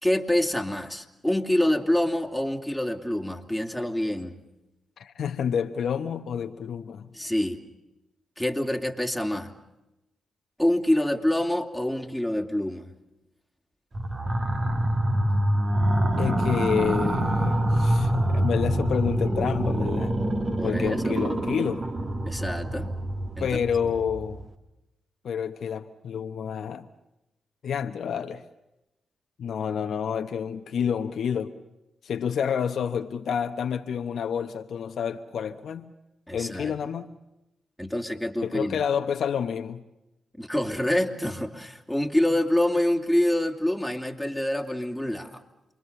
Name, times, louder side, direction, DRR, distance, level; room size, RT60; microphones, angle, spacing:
voice 1, 0.0-4.3 7.1-7.6 8.4-9.5 10.6-12.9 20.6-21.2 22.3-22.9 23.4-23.6 36.3-36.7 37.8-38.8 40.4-45.4, left 1 dB, ahead, 3.0 m, -26 dB
voice 2, 5.0-7.1 16.2-20.2 20.6-21.8 23.4-24.5 25.2-26.9 27.6-28.4 29.4-31.5 32.0-35.9 36.3-37.1 38.4-39.8, left 7 dB, 70° left, 1.0 m, -29 dB
sound 1, 13.9-24.5, right 1 dB, 40° right, 2.8 m, -26 dB
28.5 x 22.5 x 6.9 m
supercardioid pair, 50°, 0 cm